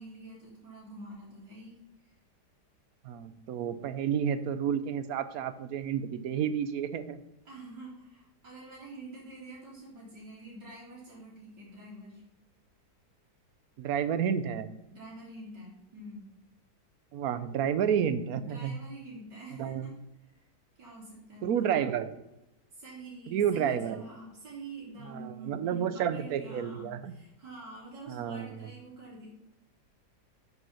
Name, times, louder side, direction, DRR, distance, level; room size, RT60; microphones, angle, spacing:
voice 1, 0.0-2.1 7.4-12.2 14.9-16.2 18.4-19.9 20.2-20.3 20.8-21.8 22.7-29.3, right 2 dB, 85° right, -7 dB, 4.6 m, -46 dB
voice 2, 3.0-7.2 13.8-14.7 17.1-18.8 19.6-19.9 21.4-22.1 23.3-24.0 25.0-27.1 28.1-28.5, right 8 dB, 65° right, 13 dB, 1.1 m, -30 dB
9.4 x 5.5 x 5.8 m, 0.90 s
omnidirectional pair, 1.8 m